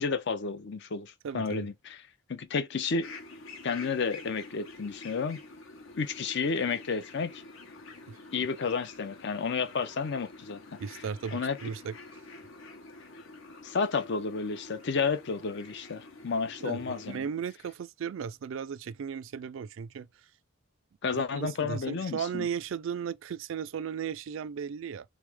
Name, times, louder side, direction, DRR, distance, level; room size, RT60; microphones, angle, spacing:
voice 1, 0.0-2.0 2.3-3.1 3.6-5.4 6.0-7.3 8.3-10.8 11.3-11.6 13.6-17.2 21.0-22.5, left 5 dB, 55° left, 0.5 m, -31 dB
voice 2, 1.2-1.7 8.1-8.2 10.8-12.2 16.6-20.1 21.0-25.0, right 7 dB, 65° right, 0.3 m, -36 dB
sound 1, 3.0-17.2, left 3 dB, 70° left, 1.0 m, -48 dB
3.5 x 3.2 x 3.4 m
head